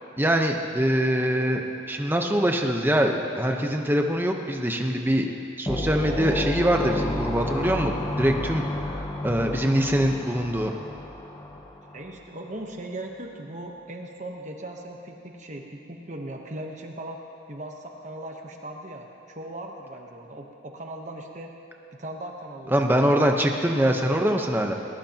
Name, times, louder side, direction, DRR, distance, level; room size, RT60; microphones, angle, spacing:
voice 1, 0.2-5.3 5.6-8.6 9.2-10.7 22.7-24.7, equal, 10° right, 2 dB, 0.9 m, -23 dB
sound 1, 5.7-12.1, left 1 dB, 20° left, 0.8 m, -31 dB
voice 2, 11.9-17.2 17.5-21.5 21.9-23.1, right 1 dB, 40° right, 2 dB, 1.1 m, -38 dB
21.0 x 20.0 x 2.9 m, 2.9 s
head